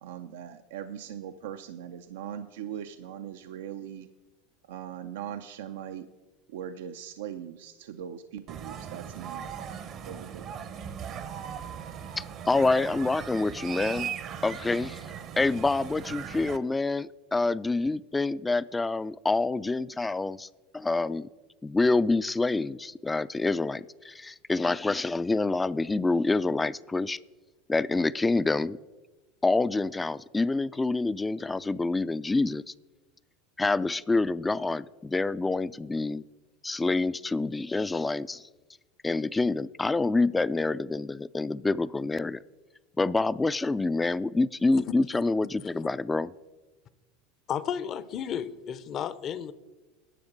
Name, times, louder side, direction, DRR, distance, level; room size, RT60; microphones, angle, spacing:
voice 1, 0.0-4.1 4.7-6.1 6.5-9.5 9.9-10.5, right 9 dB, 75° right, 0.5 m, -40 dB
sound 1, 8.5-16.6, right 8 dB, 45° right, 0.8 m, -39 dB
voice 2, 12.2-14.1 14.4-15.0 15.4-20.5 20.7-21.3 21.6-27.2 27.7-28.8 29.4-32.6 33.6-36.2 36.6-38.4 39.0-42.4 43.0-46.3, left 3 dB, 15° left, 0.4 m, -27 dB
voice 3, 44.7-45.2 47.5-49.5, left 8 dB, 40° left, 0.7 m, -33 dB
11.0 x 7.0 x 6.6 m
hypercardioid pair, 85°, 0 cm